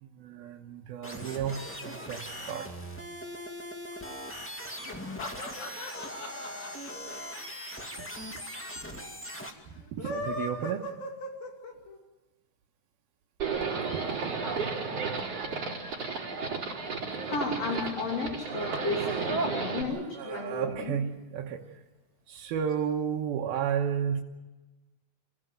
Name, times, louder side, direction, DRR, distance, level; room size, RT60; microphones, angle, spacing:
voice 1, 0.0-2.7 8.0-8.1 9.8-10.9 13.9-14.1 19.9-21.7 22.3-24.2, right 8 dB, 85° right, 0 dB, 3.0 m, -33 dB
sound 1, 1.0-9.5, equal, 5° left, 1.1 m, -40 dB
sound 2, 4.8-8.2 8.5-8.6 8.8-8.9 9.8-12.0, left 2 dB, 70° left, 4.3 m, -38 dB
Livestock farm animals working animals, 13.4-19.8, right 4 dB, 40° right, 5.2 m, -32 dB
voice 2, 17.3-19.0 19.3-21.0, left 3 dB, 45° left, 0 dB, 3.9 m, -33 dB
27.0 x 17.0 x 9.3 m, 1.2 s
omnidirectional pair, 4.3 m